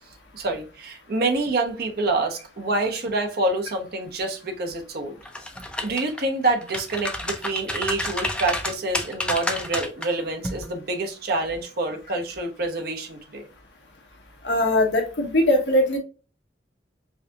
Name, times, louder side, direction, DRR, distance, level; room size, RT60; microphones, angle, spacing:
voice 1, 0.3-5.1 5.8-13.5, right 2 dB, 60° right, 1.0 m, -27 dB
sound 1, 5.3-6.2 6.6-10.1 10.4-10.7, left 1 dB, 5° left, 0.5 m, -29 dB
voice 2, 14.4-16.0, left 1 dB, 80° left, 1.1 m, -20 dB
4.7 x 2.8 x 2.4 m
head